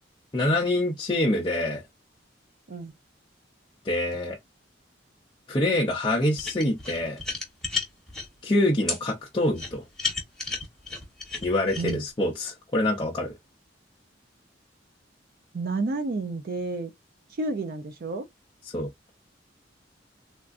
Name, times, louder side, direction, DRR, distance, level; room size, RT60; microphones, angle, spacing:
voice 1, 0.3-1.8 3.8-4.4 5.5-7.2 8.4-9.8 11.4-13.3 18.7-18.9, left 1 dB, 25° left, 0.5 m, -25 dB
sound 1, 6.4-8.3 8.9-9.0 9.6-11.9, left 4 dB, ahead, 1.1 m, -32 dB
voice 2, 15.5-16.9 17.4-18.2, right 3 dB, 55° right, 0.4 m, -30 dB
3.5 x 2.4 x 2.4 m
head